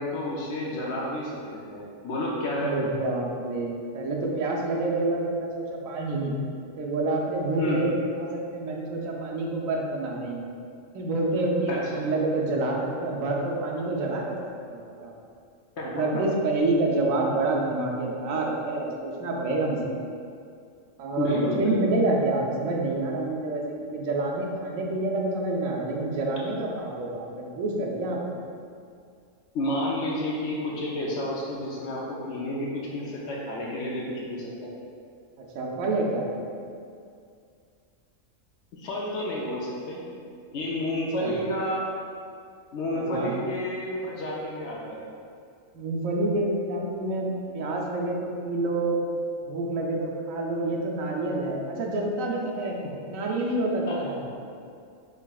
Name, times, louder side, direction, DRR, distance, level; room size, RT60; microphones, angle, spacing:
voice 1, 0.0-2.9 7.6-7.8 11.7-11.8 15.8-15.9 21.2-21.9 29.5-34.7 38.8-40.0 40.5-41.9 42.7-45.1 53.9-54.3, left 1 dB, 65° left, -4 dB, 0.8 m, -30 dB
voice 2, 2.6-6.3 6.8-10.5 10.9-14.3 14.7-15.1 15.9-20.0 21.0-28.4 35.4-36.3 41.2-41.4 42.9-43.3 45.7-49.0 49.5-52.8 53.1-54.2, right 2 dB, 80° right, -1 dB, 1.0 m, -28 dB
4.8 x 3.2 x 2.3 m, 2.3 s
omnidirectional pair, 1.4 m